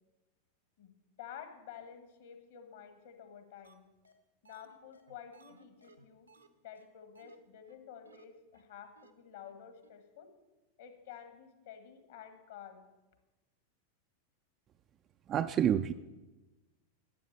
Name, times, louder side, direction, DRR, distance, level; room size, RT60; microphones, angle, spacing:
voice 1, 0.8-3.9 4.4-6.3 6.6-10.3 10.8-12.9, left 8 dB, 60° left, 8 dB, 1.7 m, -51 dB
sound 1, 3.6-3.7 4.0-4.1 4.4-6.5 6.7-6.9 7.2-7.4 7.7-7.8 8.1-8.2 8.5-8.6 9.0-9.1 9.4-9.5 9.8-9.9, right 3 dB, 85° right, 1.0 m, -61 dB
voice 2, 15.3-15.9, right 9 dB, 30° right, 9 dB, 0.4 m, -28 dB
11.5 x 8.4 x 6.9 m, 1.1 s
figure-of-eight pair, 90°, 0 cm